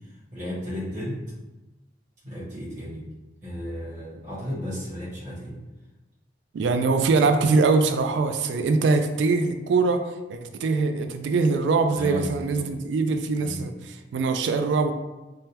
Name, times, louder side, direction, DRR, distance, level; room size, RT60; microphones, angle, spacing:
voice 1, 0.3-1.2 2.2-3.1 3.4-5.6 11.9-12.7 13.4-13.6, equal, 40° right, -10 dB, 1.2 m, -34 dB
voice 2, 6.5-10.0 10.3-14.9, right 4 dB, 75° right, 7 dB, 0.3 m, -23 dB
3.4 x 2.2 x 2.8 m, 1.1 s
head